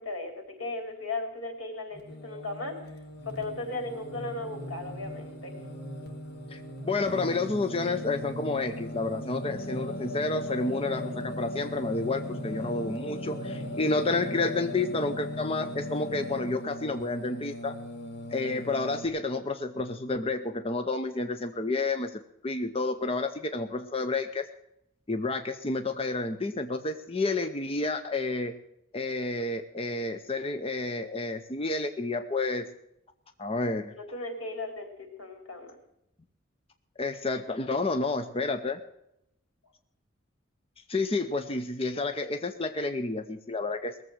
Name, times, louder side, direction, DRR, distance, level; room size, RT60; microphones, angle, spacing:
voice 1, 0.0-2.8 3.3-5.5 34.0-35.8, left 2 dB, 90° left, 4 dB, 3.7 m, -36 dB
Singing, 1.9-19.1, left 1 dB, 55° left, 2.3 m, -38 dB
voice 2, 6.5-17.8 18.3-24.5 25.1-28.5 28.9-32.7 33.4-33.9 37.0-38.8 40.9-44.0, left 3 dB, 30° left, 8 dB, 0.7 m, -30 dB
19.0 x 7.5 x 7.8 m, 0.79 s
head